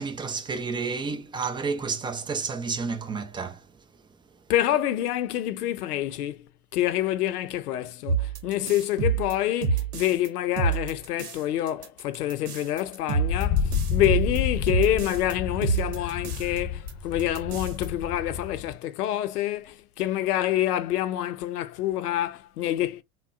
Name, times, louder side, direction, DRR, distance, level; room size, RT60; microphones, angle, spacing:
voice 1, 0.0-3.6, right 4 dB, 10° right, 0.4 m, -30 dB
voice 2, 4.5-6.5 6.7-23.0, left 13 dB, 85° left, 0.6 m, -27 dB
sound 1, 8.1-10.3 10.6-11.4 11.7-15.3 15.6-16.6 16.9-17.0 17.2-17.9, right 5 dB, 85° right, 0.8 m, -28 dB
Wind, 13.2-18.7, left 7 dB, 35° left, 0.8 m, -30 dB
3.5 x 2.1 x 2.3 m
hypercardioid pair, 90°, 45 cm